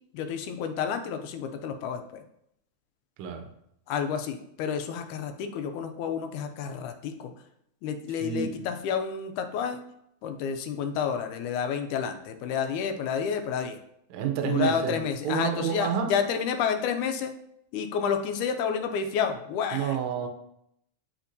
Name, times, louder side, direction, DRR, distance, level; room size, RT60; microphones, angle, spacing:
voice 1, 0.1-2.2 3.9-7.3 7.8-9.8 10.2-13.8 14.4-17.3 17.7-20.0, left 7 dB, 85° left, 6 dB, 2.1 m, -30 dB
voice 2, 8.2-8.5 14.1-16.2 19.7-20.3, right 8 dB, 75° right, 5 dB, 1.9 m, -29 dB
7.0 x 5.0 x 2.7 m, 0.75 s
omnidirectional pair, 3.4 m